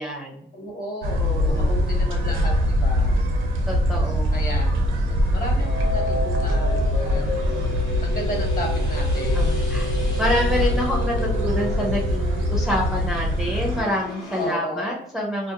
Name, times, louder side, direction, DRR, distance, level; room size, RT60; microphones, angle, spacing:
voice 1, 0.0-0.5 1.2-1.7 3.7-4.4 9.3-9.9 10.2-15.5, left 1 dB, ahead, -2 dB, 0.4 m, -27 dB
voice 2, 0.5-2.5 2.8-3.1 4.3-4.7 5.0-7.2 8.0-9.6 14.4-14.9, left 1 dB, 45° left, -1 dB, 1.1 m, -33 dB
sound 1, 1.0-13.8, equal, 80° right, 0.6 m, -23 dB
sound 2, 4.5-14.6, left 2 dB, 85° left, 0.9 m, -44 dB
sound 3, 5.6-13.5, left 1 dB, 65° left, 0.5 m, -32 dB
2.3 x 2.2 x 2.8 m, 0.71 s
cardioid pair, 90°, 20 cm